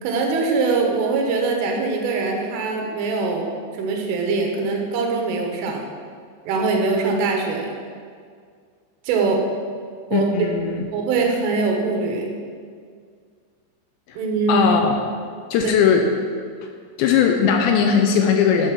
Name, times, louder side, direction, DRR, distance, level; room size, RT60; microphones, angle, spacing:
voice 1, 0.0-3.5 3.8-5.8 6.4-7.7 9.1-9.4 10.1-10.5 10.9-12.3 14.2-14.7 15.6-15.7, right 4 dB, 80° right, 1 dB, 3.8 m, -22 dB
voice 2, 10.1-10.9 14.5-15.0 15.5-16.1 17.0-18.7, left 7 dB, 80° left, 3 dB, 2.7 m, -18 dB
12.5 x 7.8 x 6.0 m, 2.1 s
omnidirectional pair, 5.8 m